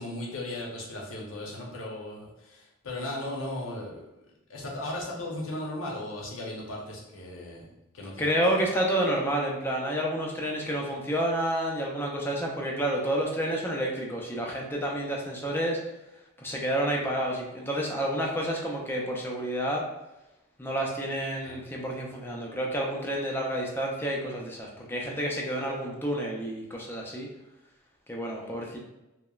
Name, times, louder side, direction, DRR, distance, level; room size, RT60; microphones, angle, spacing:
voice 1, 0.0-4.0 4.5-8.4 21.4-21.6 28.3-28.5, left 1 dB, 80° left, -2 dB, 0.7 m, -37 dB
voice 2, 8.2-15.8 16.4-19.8 20.6-27.3 28.1-28.8, right 1 dB, 10° left, -1 dB, 0.4 m, -29 dB
2.9 x 2.0 x 2.3 m, 0.95 s
head